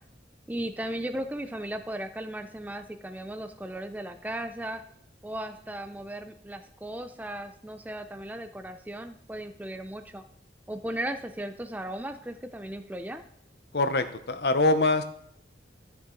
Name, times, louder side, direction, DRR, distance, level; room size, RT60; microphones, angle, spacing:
voice 1, 0.5-4.8 5.2-10.2 10.7-13.2, right 1 dB, 10° right, 7 dB, 0.4 m, -36 dB
voice 2, 13.7-15.0, left 2 dB, 65° left, 10 dB, 0.8 m, -24 dB
13.0 x 7.2 x 3.8 m, 0.68 s
head